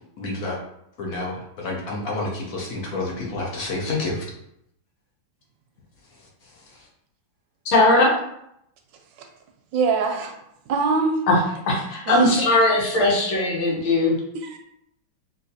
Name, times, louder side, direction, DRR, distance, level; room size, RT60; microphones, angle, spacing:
voice 1, 0.2-0.6 1.0-4.3, left 2 dB, 65° left, -2 dB, 0.8 m, -29 dB
voice 2, 7.7-8.1 11.3-11.4 11.7-14.1, left 2 dB, 80° left, -1 dB, 1.7 m, -19 dB
voice 3, 9.7-10.3 10.7-11.2 12.1-12.3 14.3-14.6, right 4 dB, 75° right, 3 dB, 1.1 m, -23 dB
3.9 x 2.7 x 2.6 m, 0.76 s
omnidirectional pair, 2.2 m